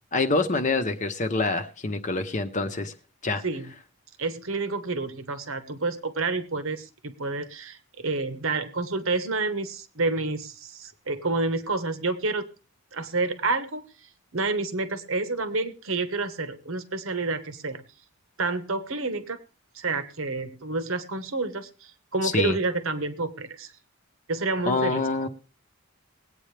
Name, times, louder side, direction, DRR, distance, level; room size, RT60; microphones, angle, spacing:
voice 1, 0.1-2.9 3.2-3.4 22.2-22.5 24.7-25.3, left 3 dB, 35° left, 7 dB, 0.9 m, -26 dB
voice 2, 4.2-12.5 12.9-13.9 14.3-17.8 18.4-19.4 19.7-23.7 24.3-25.3, right 3 dB, 65° right, 11 dB, 1.2 m, -29 dB
21.0 x 8.9 x 3.3 m, 0.33 s
head